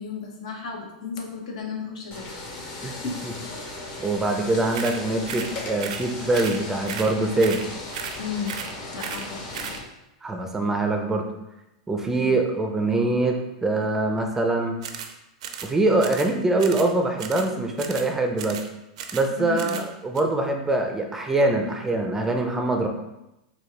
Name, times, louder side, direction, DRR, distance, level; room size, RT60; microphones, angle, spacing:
voice 1, 0.0-3.2 8.2-8.5 8.9-9.7 11.9-12.4 19.4-19.8, left 6 dB, 80° left, 1 dB, 0.9 m, -34 dB
sound 1, 2.1-9.8, left 2 dB, 40° left, 0.9 m, -37 dB
voice 2, 4.0-7.6 10.2-11.3 11.9-14.8 15.6-18.6 19.1-22.9, right 2 dB, 10° right, 3 dB, 0.4 m, -23 dB
sound 2, 4.7-5.0 5.3-5.5 5.8-6.1 6.3-6.6 6.9-7.1 7.4-7.7 7.9-8.2 8.5-8.7 9.0-9.3 9.5-9.8 14.8-15.1 15.4-15.7 16.0-16.3 16.6-16.9 17.2-17.5 17.8-18.1 18.4-18.7 19.0-19.3 19.6-19.9 20.2-20.3, right 7 dB, 70° right, 0.4 m, -35 dB
4.3 x 2.3 x 3.1 m, 0.92 s
hypercardioid pair, 130°, 4 cm